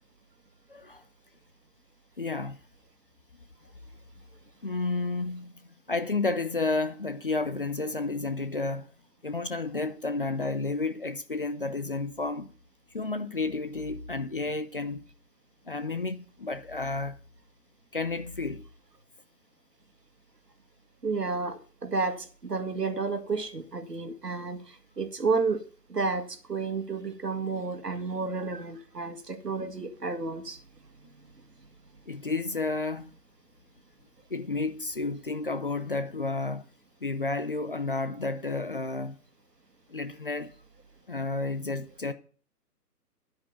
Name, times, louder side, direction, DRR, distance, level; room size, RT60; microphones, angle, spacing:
voice 1, 0.7-1.0 2.2-2.6 4.6-5.5 5.9-8.9 9.2-12.5 12.9-15.0 15.7-17.2 17.9-18.6 32.1-33.1 34.3-36.6 37.0-39.2 39.9-40.5 41.1-42.1, left 3 dB, 35° left, 0.6 m, -31 dB
voice 2, 21.0-25.6 25.9-30.6, right 4 dB, 75° right, 1.9 m, -31 dB
10.5 x 8.4 x 5.6 m
figure-of-eight pair, 145°, 48 cm